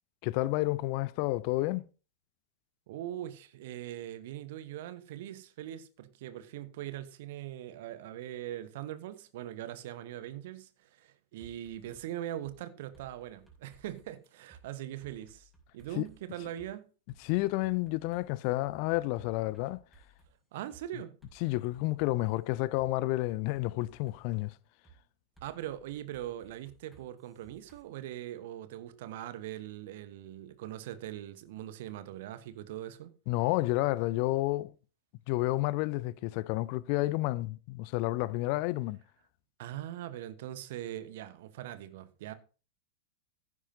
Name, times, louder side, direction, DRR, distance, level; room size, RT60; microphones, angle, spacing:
voice 1, 0.2-1.9 16.0-16.1 17.2-19.8 21.4-24.5 33.3-34.7 35.3-39.0, left 19 dB, 45° left, 0.5 m, -30 dB
voice 2, 2.9-16.9 20.5-21.2 25.4-33.1 39.6-42.3, right 12 dB, 55° right, 1.1 m, -41 dB
sound 1, 11.4-12.0 12.4-12.6 12.9-14.6 15.0-16.2 16.6-16.7 17.1-20.3 20.7-20.8 21.2-22.9 23.3-24.5 24.8-25.0 25.4-27.8, right 5 dB, ahead, 5.4 m, -59 dB
15.0 x 9.9 x 2.8 m
figure-of-eight pair, 90°, 0 cm